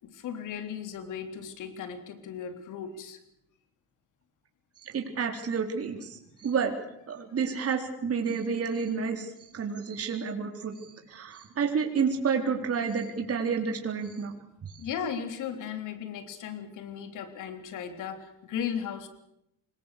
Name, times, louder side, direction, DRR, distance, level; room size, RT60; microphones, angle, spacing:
voice 1, 0.0-3.2 14.8-19.1, left 8 dB, 85° left, 9 dB, 3.5 m, -36 dB
voice 2, 4.8-6.7 7.1-14.3 14.6-14.8, right 6 dB, 50° right, 3 dB, 4.1 m, -30 dB
26.0 x 21.5 x 6.8 m, 0.78 s
cardioid pair, 90°, 30 cm